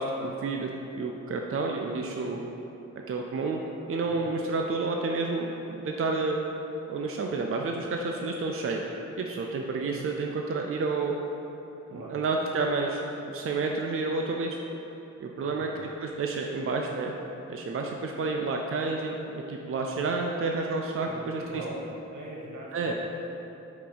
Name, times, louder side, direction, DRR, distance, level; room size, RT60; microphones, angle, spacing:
voice 1, 0.0-2.4 3.1-3.6 3.9-6.4 6.9-8.8 9.2-11.1 11.9-13.0 13.3-14.6 15.2-17.1 17.5-21.4 22.7-22.9, right 3 dB, 45° right, 1 dB, 0.5 m, -30 dB
voice 2, 4.1-4.4 11.9-12.2 15.4-15.8 21.0-23.0, right 1 dB, 80° right, -3 dB, 1.2 m, -41 dB
8.3 x 2.9 x 4.0 m, 3.0 s
cardioid pair, 65°, 30 cm